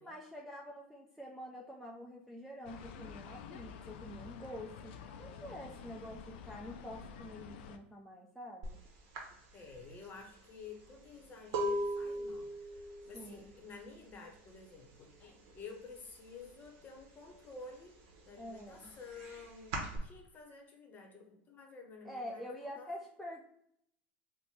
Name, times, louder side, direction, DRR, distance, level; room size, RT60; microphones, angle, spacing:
voice 1, 0.0-8.8 13.1-13.5 18.4-19.0 22.0-23.4, equal, ahead, -3 dB, 0.4 m, -47 dB
sound 1, 2.6-7.8, left 7 dB, 70° left, 0.4 m, -49 dB
sound 2, 8.6-8.8 9.1-14.8 15.1-15.6 15.9-17.0 17.4-20.0, right 1 dB, 55° right, 0.9 m, -39 dB
voice 2, 9.5-17.9 18.2-22.5 22.8-22.9, left 4 dB, 30° left, 2 dB, 0.8 m, -51 dB
3.1 x 2.1 x 4.2 m, 0.72 s
hypercardioid pair, 110°, 6 cm